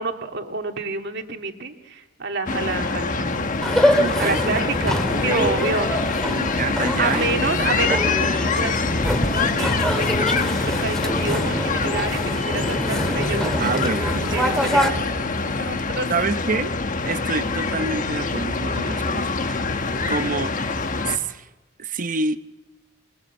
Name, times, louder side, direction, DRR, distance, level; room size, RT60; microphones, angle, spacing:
voice 1, 0.0-3.8 4.2-6.0 7.0-10.4 10.6-13.9 14.3-14.9 15.4-16.1, right 3 dB, 60° right, 5 dB, 2.2 m, -29 dB
sound 1, 2.5-21.2, left 3 dB, 40° left, 1.3 m, -25 dB
sound 2, 3.6-14.9, equal, 5° left, 2.4 m, -25 dB
voice 2, 3.9-4.5 5.1-7.7 13.5-14.5 14.9-15.0 16.1-16.8 17.0-20.6 21.0-21.5 21.8-22.4, right 3 dB, 40° right, 11 dB, 1.0 m, -28 dB
27.0 x 21.5 x 8.1 m, 1.1 s
head